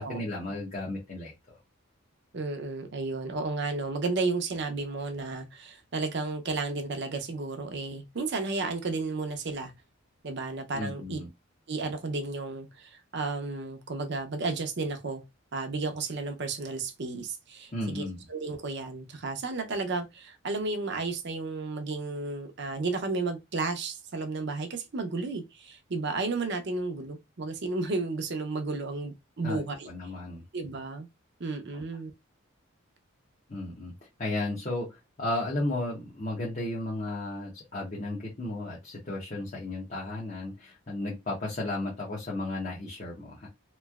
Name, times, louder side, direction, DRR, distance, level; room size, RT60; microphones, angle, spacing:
voice 1, 0.0-1.6 10.7-11.3 17.7-18.2 29.4-30.4 31.7-31.8 33.5-33.9 34.2-43.5, left 2 dB, 35° left, 0.8 m, -34 dB
voice 2, 2.3-9.7 10.2-11.2 11.7-15.2 15.5-18.0 18.3-29.9 30.5-31.1 31.4-32.1, right 3 dB, 55° right, 0.6 m, -33 dB
3.0 x 2.6 x 2.3 m
head